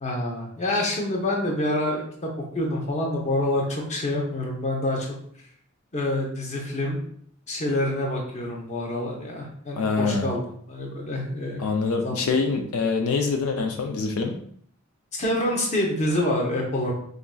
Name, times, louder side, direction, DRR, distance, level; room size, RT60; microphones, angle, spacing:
voice 1, 0.0-5.1 5.9-7.0 7.5-10.4 10.7-11.6 12.0-12.2 15.1-16.9, left 1 dB, 35° left, 0 dB, 0.7 m, -27 dB
voice 2, 9.8-10.3 11.6-14.4, left 4 dB, 80° left, 4 dB, 0.4 m, -25 dB
4.0 x 2.5 x 2.2 m, 0.64 s
head